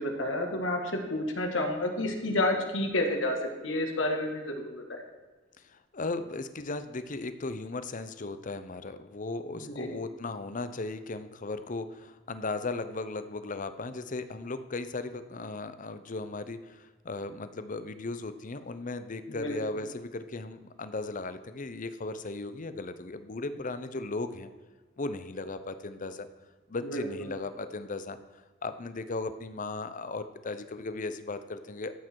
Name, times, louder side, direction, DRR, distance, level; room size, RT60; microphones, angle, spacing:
voice 1, 0.0-5.0 9.6-9.9 19.3-19.8 26.8-27.3, left 1 dB, 70° left, 3 dB, 2.1 m, -30 dB
voice 2, 5.6-24.5 25.0-26.3 26.7-28.2 28.6-31.9, left 3 dB, 40° left, 11 dB, 0.7 m, -36 dB
13.5 x 8.4 x 4.7 m, 1.3 s
head